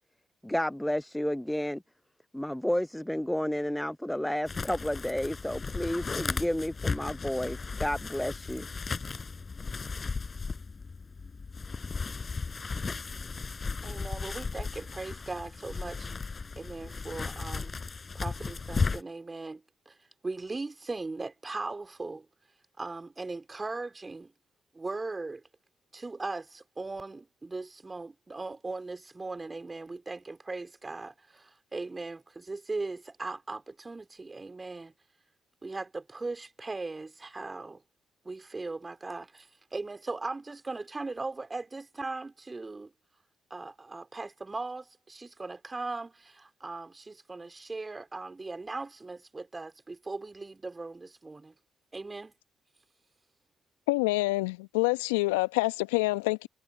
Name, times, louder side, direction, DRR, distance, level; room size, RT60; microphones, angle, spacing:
voice 1, 0.4-1.8 2.3-8.7, left 1 dB, 5° left, 0.6 m, -31 dB
sound 1, 4.5-19.0, left 4 dB, 35° left, 5.6 m, -35 dB
voice 2, 13.8-16.1 16.6-17.7 18.1-20.0 20.2-22.3 22.8-24.3 24.7-25.4 25.9-34.9 35.6-37.8 38.2-42.9 43.5-51.5 51.9-52.3, right 3 dB, 25° right, 4.0 m, -39 dB
voice 3, 53.9-56.5, left 23 dB, 80° left, 1.2 m, -27 dB
hypercardioid pair, 45°, 0 cm